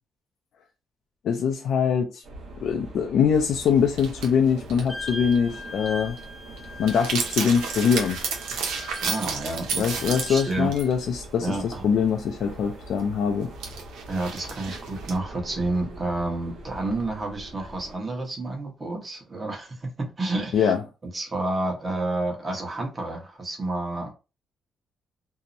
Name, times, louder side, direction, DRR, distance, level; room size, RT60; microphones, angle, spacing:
voice 1, 1.2-2.2 2.6-6.2 6.8-8.2 9.7-13.5 20.5-20.8, left 7 dB, 70° left, 0.3 m, -23 dB
sound 1, 2.2-18.0, right 1 dB, 70° right, 1.0 m, -43 dB
sound 2, 3.7-3.8 4.0-5.4 5.7-5.9 6.2-6.3 6.6-10.9 11.2-11.3 13.0-13.1 13.6-15.2, right 5 dB, 85° right, 0.6 m, -32 dB
Wind instrument woodwind instrument, 4.9-10.9, left 1 dB, 5° left, 0.5 m, -40 dB
voice 2, 9.0-10.0 10.3-10.7 11.4-11.9 14.1-20.7 21.1-24.1, right 2 dB, 25° right, 0.9 m, -30 dB
2.6 x 2.0 x 2.6 m
cardioid pair, 90°, 0 cm